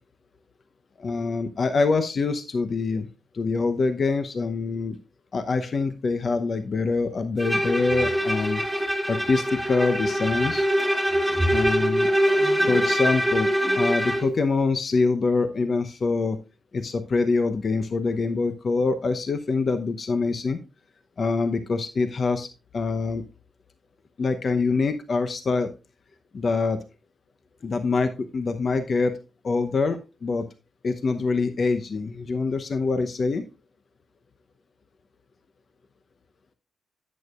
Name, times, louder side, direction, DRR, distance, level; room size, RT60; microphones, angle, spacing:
voice 1, 1.0-3.1 3.3-5.0 5.3-8.6 9.1-10.6 11.5-12.1 12.6-13.5 13.8-16.4 16.7-20.6 21.2-22.5 22.7-23.2 24.2-25.7 26.3-26.8 27.6-29.2 29.4-30.5 30.8-33.4, left 4 dB, 60° left, 9 dB, 0.8 m, -25 dB
Bowed string instrument, 7.4-14.3, equal, ahead, 2.5 m, -23 dB
11.0 x 8.5 x 2.4 m, 0.29 s
supercardioid pair, 45°, 0 cm